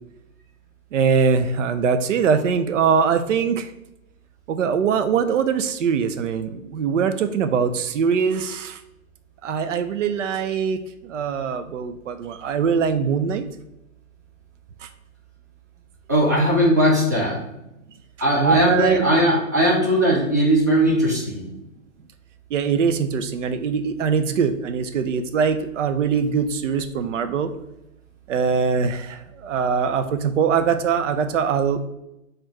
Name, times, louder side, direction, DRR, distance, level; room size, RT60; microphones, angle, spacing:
voice 1, 0.9-3.7 4.5-8.8 9.4-13.4 14.8-14.9 18.4-19.0 22.5-27.5 28.3-31.8, right 6 dB, 60° right, 9 dB, 0.6 m, -22 dB
voice 2, 16.1-17.4 18.2-21.5, right 1 dB, 15° right, -4 dB, 0.4 m, -18 dB
4.4 x 2.5 x 4.4 m, 0.87 s
hypercardioid pair, 145°, 41 cm